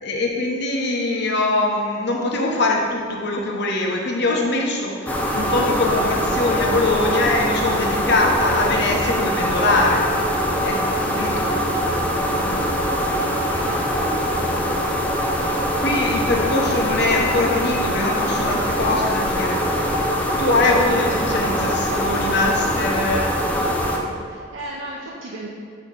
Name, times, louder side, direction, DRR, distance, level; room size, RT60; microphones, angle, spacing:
voice 1, 0.0-10.1 10.6-11.5 12.3-12.7 13.2-13.5 15.8-19.9 20.4-23.3, left 2 dB, 60° left, 0 dB, 0.9 m, -22 dB
sound 1, 5.1-24.0, equal, 10° left, 0.5 m, -22 dB
voice 2, 11.3-12.1 13.0-13.8 24.3-25.5, right 1 dB, 85° right, -4 dB, 0.7 m, -36 dB
6.5 x 3.0 x 5.1 m, 2.1 s
head